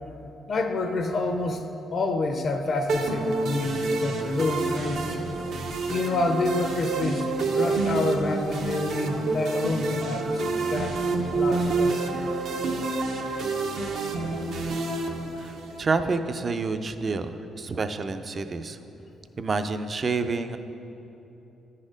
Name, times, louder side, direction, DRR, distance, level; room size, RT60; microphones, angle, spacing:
voice 1, 0.5-1.6 1.9-5.2 5.9-11.0 11.3-12.1 15.7-15.8, left 2 dB, 50° left, 6 dB, 0.5 m, -28 dB
sound 1, 2.9-15.9, right 3 dB, 70° right, 0.7 m, -28 dB
voice 2, 15.4-18.8 19.4-20.6, right 4 dB, 40° right, 9 dB, 0.4 m, -28 dB
9.6 x 4.2 x 5.0 m, 3.0 s
cardioid pair, 90°, 0 cm